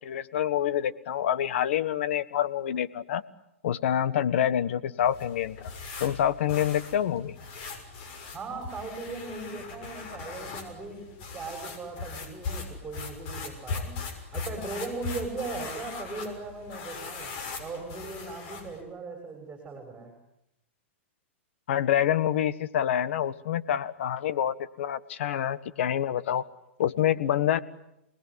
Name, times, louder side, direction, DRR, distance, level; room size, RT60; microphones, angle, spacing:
voice 1, 0.0-3.2 3.6-5.7 6.0-7.4 21.7-26.5 26.8-27.6, left 10 dB, 65° left, 14 dB, 1.6 m, -27 dB
sound 1, 5.0-18.8, left 4 dB, 50° left, 6.5 m, -39 dB
voice 2, 8.3-14.0 14.3-20.1, right 3 dB, 15° right, 2 dB, 6.8 m, -38 dB
28.5 x 20.5 x 9.9 m, 0.86 s
hypercardioid pair, 115°, 7 cm